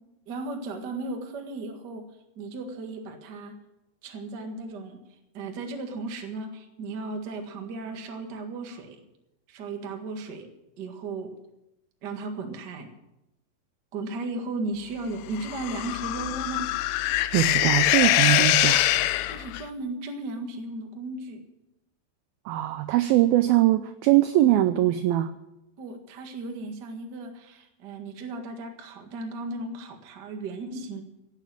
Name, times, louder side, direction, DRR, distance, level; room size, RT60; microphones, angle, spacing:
voice 1, 0.3-2.1 2.3-3.6 4.0-5.0 5.3-9.0 9.5-11.3 12.0-12.9 13.9-16.7 19.3-21.4 25.8-31.0, right 2 dB, 60° right, 4 dB, 1.1 m, -35 dB
sound 1, 15.3-19.6, left 15 dB, 90° left, 2.9 m, -23 dB
voice 2, 17.3-18.9 22.5-25.3, right 15 dB, 90° right, 11 dB, 2.1 m, -22 dB
16.5 x 8.8 x 7.5 m, 0.90 s
omnidirectional pair, 5.0 m